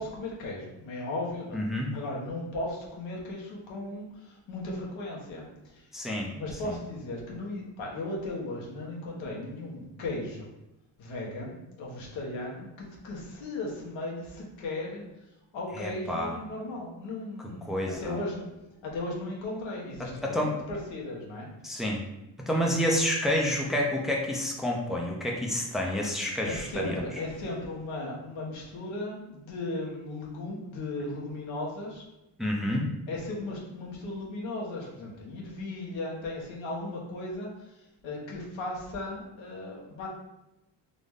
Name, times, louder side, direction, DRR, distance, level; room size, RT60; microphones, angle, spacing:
voice 1, 0.0-5.9 6.3-10.5 11.0-15.0 15.5-18.5 18.8-21.5 26.4-32.0 33.1-40.1, left 2 dB, 80° left, -3 dB, 1.3 m, -36 dB
voice 2, 1.5-1.9 5.9-6.3 6.6-6.7 15.8-16.4 17.7-18.2 20.2-20.6 21.6-22.0 22.5-27.0 32.4-32.9, left 1 dB, ahead, -1 dB, 0.7 m, -29 dB
4.0 x 3.0 x 3.5 m, 0.92 s
cardioid pair, 80°, 46 cm